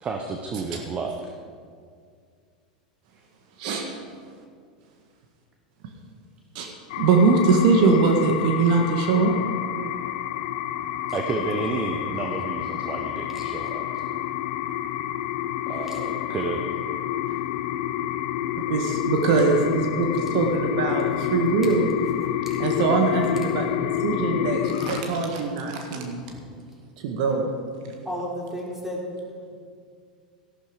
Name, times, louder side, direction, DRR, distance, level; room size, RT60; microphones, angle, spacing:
voice 1, 0.0-1.3 11.1-14.0 15.7-16.6 17.3-17.4, right 4 dB, 30° right, 4 dB, 1.2 m, -31 dB
sound 1, 6.9-25.0, left 12 dB, 60° left, 0.6 m, -29 dB
voice 2, 7.0-9.4 18.6-21.8 22.6-26.2 27.0-27.5, right 4 dB, 60° right, 3 dB, 1.6 m, -22 dB
voice 3, 10.9-11.2 13.3-13.4 15.9-16.0 26.2-26.5 28.0-29.1, equal, 5° right, -3 dB, 4.1 m, -34 dB
13.5 x 12.0 x 5.1 m, 2.1 s
hypercardioid pair, 95°, 4 cm